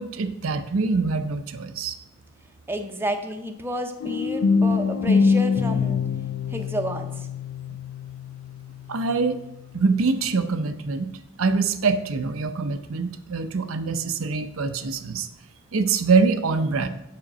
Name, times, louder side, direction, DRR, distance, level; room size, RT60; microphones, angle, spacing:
voice 1, 0.0-2.0 8.9-9.4 9.7-11.1 11.4-15.3 15.7-16.9, right 4 dB, 80° right, 8 dB, 0.6 m, -24 dB
voice 2, 2.7-6.0 6.5-7.3, right 1 dB, 10° right, 5 dB, 0.6 m, -31 dB
sound 1, 4.0-9.9, left 5 dB, 75° left, 0.4 m, -25 dB
7.5 x 5.1 x 6.1 m, 0.86 s
head